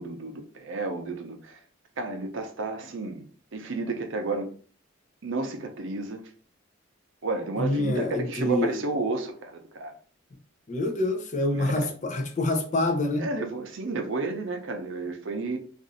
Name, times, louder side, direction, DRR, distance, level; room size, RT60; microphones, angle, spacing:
voice 1, 0.0-1.6 2.0-3.2 3.5-4.5 5.2-6.3 7.2-9.9 11.5-11.7 13.2-15.6, right 3 dB, 65° right, 0.6 m, -31 dB
voice 2, 7.6-8.8 10.7-13.3, left 2 dB, 35° left, 0.4 m, -26 dB
2.6 x 2.4 x 3.9 m
head